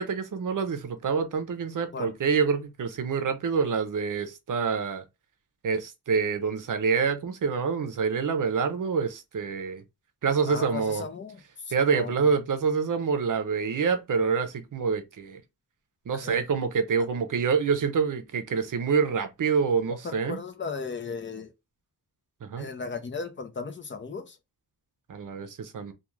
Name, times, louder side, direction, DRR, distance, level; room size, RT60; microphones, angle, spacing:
voice 1, 0.0-5.0 5.6-9.8 10.2-11.0 11.7-15.4 16.1-20.4 22.4-22.7 25.1-25.9, right 5 dB, 55° right, 0.6 m, -26 dB
voice 2, 10.5-12.3 16.1-16.4 20.0-21.5 22.5-24.4, left 5 dB, 30° left, 0.6 m, -36 dB
2.4 x 2.3 x 3.0 m
wide cardioid pair, 95°, 38 cm